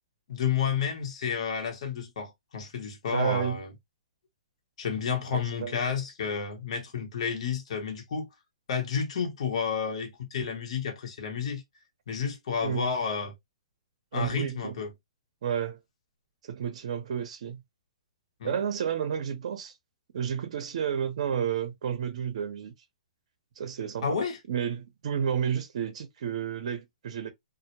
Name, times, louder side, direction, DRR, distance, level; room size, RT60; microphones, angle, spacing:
voice 1, 0.3-3.7 4.8-8.3 8.7-11.6 12.1-13.3 14.1-14.9 18.4-18.5 24.0-24.4, left 6 dB, 60° left, 0.8 m, -31 dB
voice 2, 3.1-3.6 5.3-5.9 12.6-12.9 14.1-14.7 15.4-15.8 16.4-17.6 18.4-19.7 20.1-22.7 23.6-24.2 24.5-27.3, right 8 dB, 60° right, 0.6 m, -31 dB
2.1 x 2.0 x 2.8 m
hypercardioid pair, 150°, 4 cm